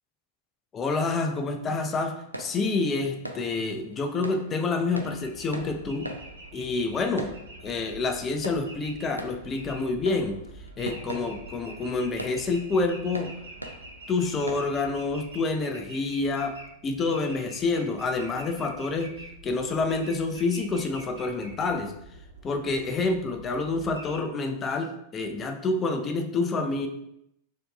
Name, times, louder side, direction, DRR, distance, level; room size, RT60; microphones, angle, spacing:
voice 1, 0.7-6.1 6.5-7.4 7.6-10.4 10.8-13.3 14.1-16.6 16.8-19.1 19.4-21.9 22.4-26.9, left 3 dB, 25° left, 5 dB, 0.4 m, -28 dB
sound 1, 1.9-15.0, right 1 dB, 85° right, 0.3 m, -43 dB
sound 2, 4.9-24.2, right 2 dB, 65° right, 0.7 m, -46 dB
4.4 x 2.7 x 2.3 m, 0.78 s
figure-of-eight pair, 90°, 0 cm